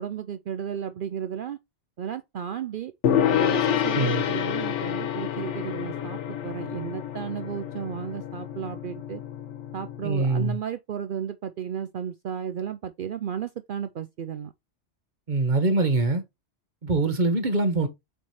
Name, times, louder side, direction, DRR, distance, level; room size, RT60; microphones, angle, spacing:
voice 1, 0.0-1.6 2.0-2.9 3.3-9.2 9.7-14.5, right 8 dB, 60° right, 0.6 m, -34 dB
Gong, 3.0-10.5, left 9 dB, 85° left, 1.2 m, -28 dB
voice 2, 3.9-4.2 10.0-10.6 15.3-16.2 16.8-17.9, right 3 dB, 40° right, 1.3 m, -23 dB
7.8 x 3.2 x 4.1 m
omnidirectional pair, 1.2 m